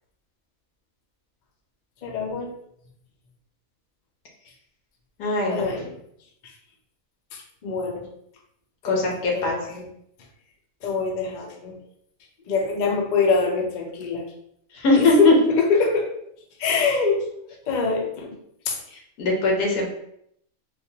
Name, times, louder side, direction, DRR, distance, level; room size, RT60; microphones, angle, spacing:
voice 1, 2.0-2.5 5.5-5.9 7.3-8.1 8.8-9.1 9.3-9.9 10.8-11.8 12.5-14.2 14.9-16.1 16.6-17.3 17.7-18.4 18.7-18.8, left 4 dB, 55° left, 0 dB, 0.5 m, -24 dB
voice 2, 5.2-5.6 8.8-9.8 14.7-15.3 19.2-19.9, left 3 dB, 85° left, -1 dB, 1.3 m, -21 dB
3.6 x 2.4 x 2.7 m, 0.73 s
omnidirectional pair, 1.5 m